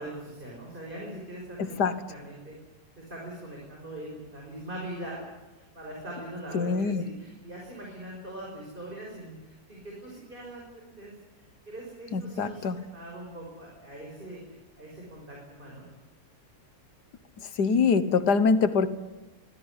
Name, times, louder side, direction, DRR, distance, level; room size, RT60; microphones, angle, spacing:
voice 1, 0.0-1.8 2.1-2.5 3.0-5.2 5.5-11.1 11.7-14.4 14.8-15.8, right 1 dB, 30° right, -2 dB, 6.0 m, -41 dB
voice 2, 1.6-1.9 6.5-7.0 12.1-12.8 17.6-18.9, left 5 dB, 90° left, 13 dB, 1.9 m, -24 dB
24.0 x 15.5 x 9.9 m, 1.2 s
omnidirectional pair, 1.7 m